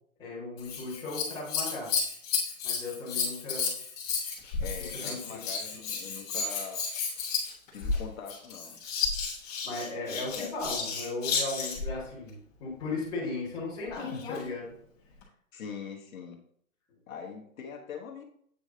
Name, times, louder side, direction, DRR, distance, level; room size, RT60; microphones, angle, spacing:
voice 1, 0.2-1.9 2.6-3.7 5.0-5.4 9.6-14.7, left 3 dB, 10° left, -8 dB, 1.5 m, -36 dB
Scissors, 0.6-11.9 13.9-14.5 15.2-15.3, left 5 dB, 25° left, 1.3 m, -32 dB
voice 2, 4.6-6.9 7.7-8.8 10.4-10.5 15.5-16.4 17.1-18.2, left 6 dB, 70° left, 1 dB, 1.2 m, -42 dB
8.0 x 3.3 x 3.8 m, 0.64 s
hypercardioid pair, 155°, 43 cm